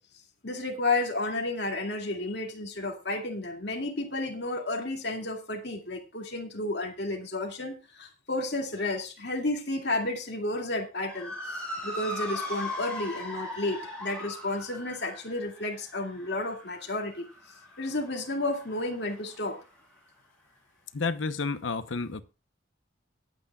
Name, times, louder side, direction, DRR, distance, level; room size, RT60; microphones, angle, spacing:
voice 1, 0.4-11.3 11.8-17.2 17.8-19.6, left 2 dB, 55° left, 2.4 m, -32 dB
Motor vehicle (road) / Siren, 11.0-19.6, left 1 dB, 5° left, 6.1 m, -39 dB
voice 2, 20.9-22.2, left 4 dB, 75° left, 0.9 m, -30 dB
23.5 x 8.4 x 2.4 m
head